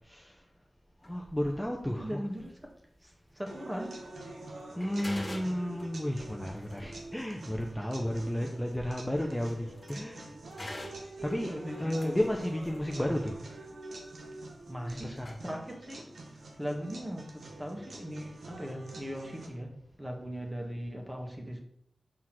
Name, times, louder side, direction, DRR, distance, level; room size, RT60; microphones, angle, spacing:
sound 1, 1.0-1.2 2.2-2.5 3.1-3.2 3.8-4.0 4.3-4.4 4.7-10.2 10.5-13.0 14.9-15.0 15.2-15.4, left 1 dB, 35° left, 1.9 m, -47 dB
voice 1, 1.1-2.2 4.8-10.2 11.2-13.4 14.9-15.4, equal, 10° left, 1 dB, 0.8 m, -33 dB
voice 2, 2.0-2.5 3.0-4.0 11.5-12.2 13.0-13.1 14.7-15.2 15.4-16.1 16.6-19.7 20.0-21.6, equal, 15° right, 1 dB, 1.7 m, -39 dB
sound 2, 3.5-19.5, right 2 dB, 80° right, 1.2 m, -46 dB
6.4 x 3.6 x 6.1 m, 0.71 s
cardioid pair, 55°, 0 cm